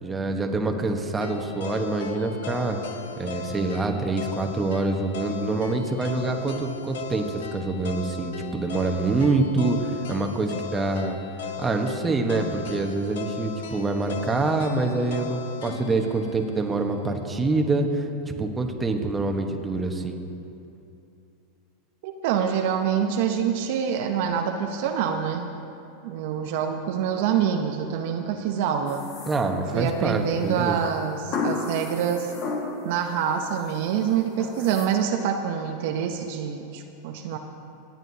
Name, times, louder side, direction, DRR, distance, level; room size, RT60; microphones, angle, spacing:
voice 1, 0.0-2.8 3.2-11.2 11.6-18.1 18.4-20.2 29.3-30.8, right 3 dB, 15° right, 3 dB, 1.2 m, -26 dB
sound 1, 1.2-17.3, left 6 dB, 75° left, 0.8 m, -37 dB
voice 2, 22.0-25.5 26.0-29.0 29.7-32.3 32.8-37.4, right 8 dB, 65° right, 4 dB, 0.8 m, -26 dB
sound 2, 28.9-29.9 31.3-33.0 33.4-33.9 34.4-34.9, left 4 dB, 45° left, 1.8 m, -32 dB
26.5 x 9.0 x 2.8 m, 2.8 s
hypercardioid pair, 105°, 0 cm